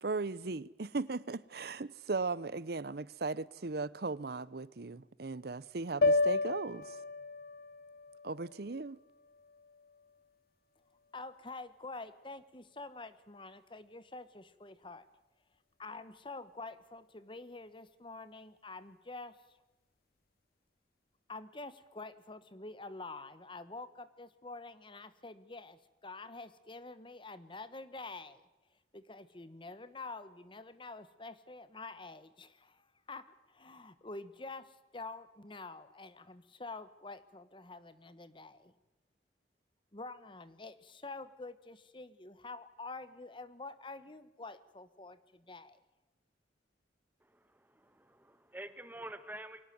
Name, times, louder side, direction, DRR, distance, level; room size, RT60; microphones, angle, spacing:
voice 1, 0.0-7.0 8.2-9.0, right 3 dB, 60° right, 0.8 m, -37 dB
sound 1, 6.0-10.3, left 3 dB, 55° left, 1.1 m, -33 dB
voice 2, 11.1-15.0 15.8-19.4 21.3-28.4 28.9-38.7 39.9-45.8, left 3 dB, 30° left, 1.2 m, -47 dB
voice 3, 47.2-49.6, right 1 dB, 10° right, 1.6 m, -48 dB
23.5 x 18.0 x 9.4 m
head